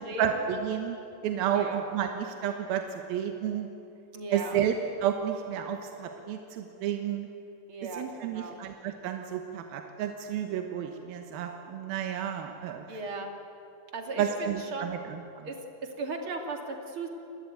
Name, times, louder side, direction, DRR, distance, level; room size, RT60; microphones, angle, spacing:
voice 1, 0.2-3.7 4.3-7.3 8.0-12.8 14.2-15.5, right 9 dB, 85° right, 5 dB, 3.1 m, -31 dB
voice 2, 1.5-1.8 4.1-4.6 7.7-8.6 12.9-13.3 13.9-14.9 15.4-17.1, right 3 dB, 40° right, 3 dB, 3.0 m, -37 dB
30.0 x 20.5 x 9.4 m, 2.9 s
omnidirectional pair, 4.1 m